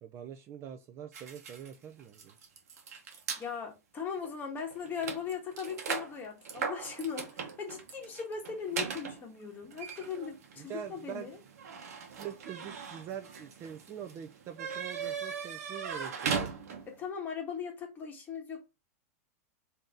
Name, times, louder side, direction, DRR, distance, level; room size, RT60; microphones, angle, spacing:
voice 1, 0.0-2.4 10.6-11.3 12.2-16.5, right 9 dB, 30° right, 0.4 m, -44 dB
sound 1, 1.1-3.5 4.2-4.3 4.6-17.0, right 6 dB, 80° right, 0.9 m, -39 dB
voice 2, 3.4-11.4 16.9-18.7, left 6 dB, 20° left, 1.4 m, -39 dB
3.7 x 2.7 x 3.7 m
hypercardioid pair, 130°, 8 cm